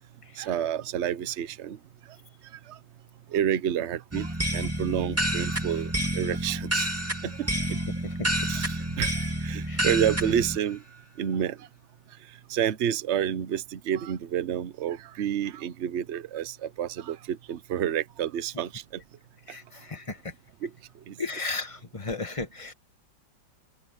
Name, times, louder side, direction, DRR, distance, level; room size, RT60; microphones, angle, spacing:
voice 1, 0.4-1.8 3.3-5.9 6.1-6.9 7.2-7.5 8.5-10.8 11.2-11.6 12.5-19.0 20.6-20.7 21.1-21.2, right 9 dB, 55° right, 0.8 m, -29 dB
sound 1, 4.1-10.6, right 1 dB, 5° right, 2.4 m, -29 dB
voice 2, 19.5-20.2 21.2-22.7, left 3 dB, 15° left, 1.9 m, -34 dB
open air
omnidirectional pair, 2.1 m